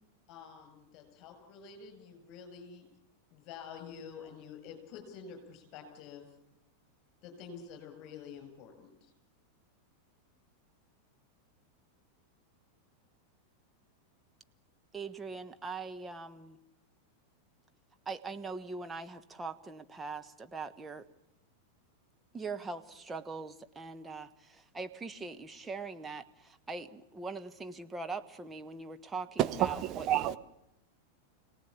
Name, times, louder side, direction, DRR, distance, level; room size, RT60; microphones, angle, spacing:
voice 1, 0.3-2.9 3.3-6.3 7.2-9.1, left 6 dB, 40° left, 6 dB, 7.7 m, -48 dB
voice 2, 14.9-16.6 18.0-21.1 22.3-30.1, right 4 dB, 15° right, 7 dB, 1.4 m, -42 dB
voice 3, 29.4-30.4, right 12 dB, 35° right, 10 dB, 1.1 m, -29 dB
27.5 x 18.0 x 8.7 m, 0.86 s
figure-of-eight pair, 90°, 0 cm